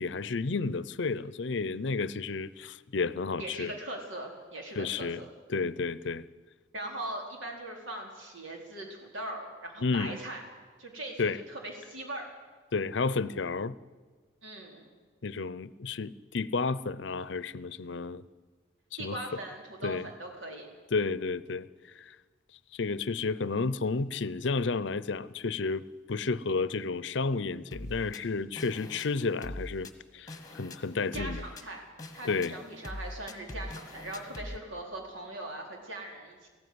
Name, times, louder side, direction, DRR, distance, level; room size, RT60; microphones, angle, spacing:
voice 1, 0.0-3.7 4.8-5.2 5.5-6.2 9.8-10.2 11.2-11.4 12.7-13.7 15.2-18.2 19.0-19.2 19.8-20.1 20.9-21.7 22.1-22.2 22.7-31.4 32.2-32.6, left 4 dB, 70° left, 0.6 m, -31 dB
voice 2, 3.4-5.1 6.7-10.4 10.8-12.3 14.4-14.9 19.0-20.7 31.1-31.8 32.1-36.5, right 1 dB, 85° right, 4.3 m, -40 dB
sound 1, 27.7-34.6, left 1 dB, 20° left, 1.3 m, -43 dB
18.0 x 15.0 x 9.6 m
head